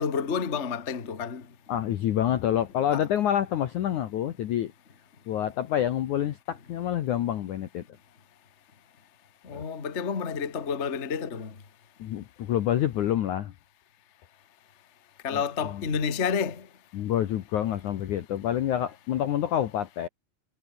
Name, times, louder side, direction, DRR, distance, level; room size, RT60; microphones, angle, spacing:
voice 1, 0.0-1.4 2.9-3.0 9.4-11.5 15.2-16.6, left 6 dB, 30° left, 1.2 m, -29 dB
voice 2, 1.7-4.7 5.3-7.8 9.5-9.6 12.0-13.5 15.3-15.4 15.7-15.9 16.9-20.1, left 11 dB, 70° left, 1.9 m, -27 dB
omnidirectional pair, 5.0 m